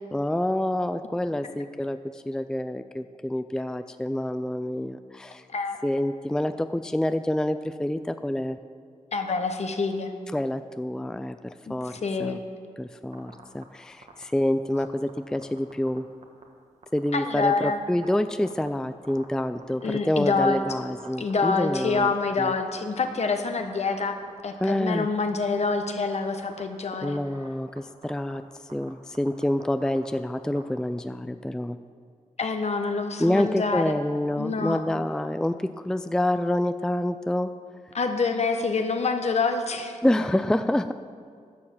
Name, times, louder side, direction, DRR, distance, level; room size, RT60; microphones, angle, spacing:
voice 1, 0.1-5.4 5.8-8.6 10.3-12.4 12.8-16.1 16.9-22.5 24.6-25.1 27.0-28.4 28.7-31.8 33.2-37.5 40.0-40.9, left 1 dB, 5° left, 10 dB, 0.4 m, -27 dB
voice 2, 9.1-10.1 11.7-12.4 17.1-17.8 19.8-20.6 21.2-24.1 24.4-27.2 32.4-33.9 34.4-34.8 37.9-40.0, left 4 dB, 55° left, 6 dB, 1.1 m, -26 dB
sound 1, 13.1-13.6 14.0-14.2 14.8-16.0 16.2-16.4 16.8-17.1 17.5-17.6 17.9-18.7 19.0-22.0 22.3-23.1 23.3-23.9 24.2-25.1 25.5-26.1 26.4-26.6 27.0-27.5 27.8-27.9 28.0-28.4 28.7-28.9 29.1-30.6, right 5 dB, 60° right, 1.5 m, -46 dB
11.5 x 6.4 x 7.2 m, 2.2 s
cardioid pair, 50°, 13 cm